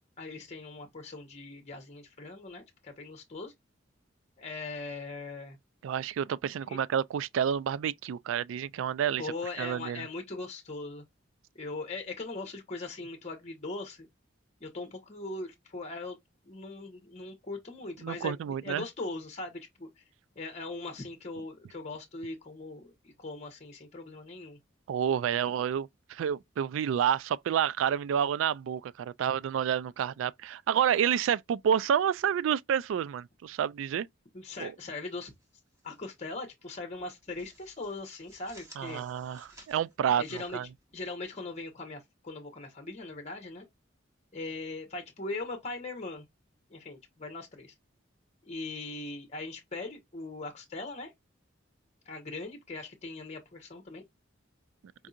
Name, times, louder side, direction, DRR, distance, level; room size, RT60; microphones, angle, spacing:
voice 1, 0.2-3.5 4.4-5.6 6.7-6.8 9.2-11.0 11.5-14.1 14.6-16.2 16.4-20.0 20.4-24.6 25.4-25.5 34.3-35.3 35.8-39.0 40.1-40.6 40.9-43.6 44.3-46.2 46.7-47.7 48.4-51.1 52.1-54.0, left 3 dB, 35° left, 0.9 m, -40 dB
voice 2, 5.8-9.3 9.6-10.0 18.0-18.8 24.9-34.1 34.6-34.7 38.8-40.7, right 8 dB, 85° right, 0.3 m, -29 dB
sound 1, 35.2-36.0 36.3-36.5 36.9-41.4, right 1 dB, 15° right, 1.3 m, -57 dB
4.7 x 2.7 x 2.4 m
head